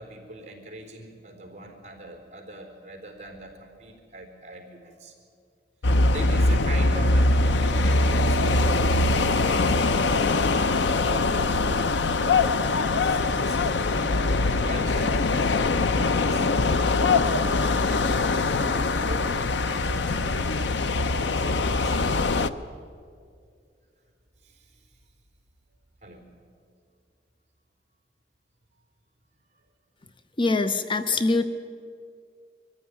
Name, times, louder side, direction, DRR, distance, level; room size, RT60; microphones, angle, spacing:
voice 1, 0.0-5.1 6.1-11.9 12.2-12.8 13.0-13.6 14.0-14.4 14.6-17.4 17.8-21.9 24.4-24.8 26.0-26.3, right 1 dB, 40° right, 4 dB, 3.8 m, -42 dB
sound 1, 5.8-22.5, left 3 dB, 70° left, 0.7 m, -22 dB
voice 2, 30.4-31.5, left 3 dB, 30° left, 10 dB, 0.7 m, -23 dB
23.0 x 15.0 x 9.6 m, 2.3 s
head